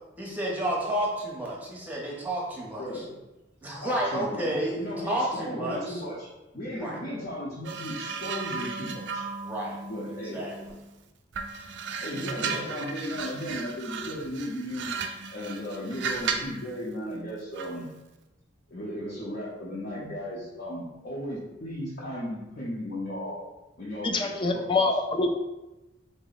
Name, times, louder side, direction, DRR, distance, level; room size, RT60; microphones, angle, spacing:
voice 1, 0.2-3.0 3.6-6.0 6.8-7.0 9.4-9.8 10.1-10.8, right 1 dB, 10° right, -3 dB, 0.7 m, -31 dB
voice 2, 2.8-3.2 3.8-6.3 6.5-9.2 9.9-10.4 12.0-14.9 15.3-17.9 18.7-23.4 23.8-25.0, equal, 55° left, -8 dB, 0.7 m, -35 dB
sound 1, 7.6-10.9 11.3-16.6 17.6-17.8, right 5 dB, 65° right, 0.3 m, -35 dB
voice 3, 24.0-25.3, left 3 dB, 25° left, 4 dB, 0.3 m, -25 dB
3.8 x 2.1 x 3.9 m, 1.0 s
head